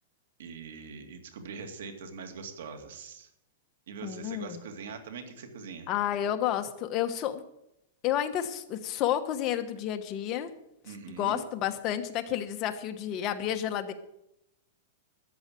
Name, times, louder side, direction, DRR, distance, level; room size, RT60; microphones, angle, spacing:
voice 1, 0.4-3.3 3.9-5.9 10.8-11.4, right 5 dB, 75° right, 5 dB, 2.2 m, -42 dB
voice 2, 4.0-4.6 5.9-7.4 8.0-10.5 11.1-13.9, left 11 dB, 30° left, 7 dB, 1.1 m, -30 dB
13.0 x 8.0 x 7.6 m, 0.82 s
supercardioid pair, 160°, 0 cm